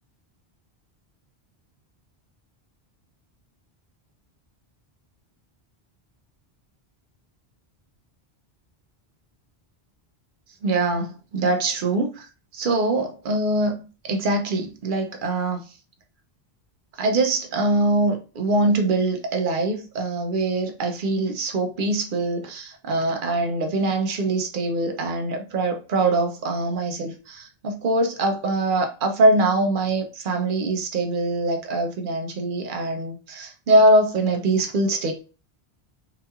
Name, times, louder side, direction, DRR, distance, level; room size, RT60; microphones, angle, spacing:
voice 1, 10.6-12.3 12.5-15.6 17.0-35.1, right 2 dB, 60° right, 0.7 m, -23 dB
2.9 x 2.7 x 2.3 m
omnidirectional pair, 1.1 m